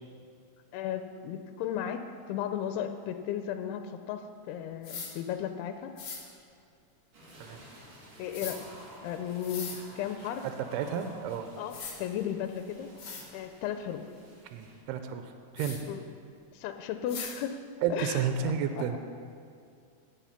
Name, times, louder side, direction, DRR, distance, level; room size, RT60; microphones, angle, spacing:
voice 1, 0.7-5.9 8.2-8.7 9.0-10.5 11.6-12.9 13.3-14.0 15.9-16.0 16.5-17.6 17.9-18.2 18.8-19.0, left 9 dB, 85° left, 8 dB, 2.5 m, -35 dB
sound 1, 4.8-5.1 6.0-6.2 8.3-8.6 9.4-9.8 11.2-11.3 11.7-11.9 12.6-12.7 13.0-13.2 15.6-15.8 17.1-17.3, left 5 dB, 60° left, 1.6 m, -39 dB
sound 2, 7.1-14.8, right 1 dB, 45° right, 2.9 m, -52 dB
voice 2, 10.7-11.5 14.5-15.8 17.8-19.0, right 7 dB, 85° right, 7 dB, 2.6 m, -31 dB
16.0 x 5.7 x 5.7 m, 2.3 s
omnidirectional pair, 4.6 m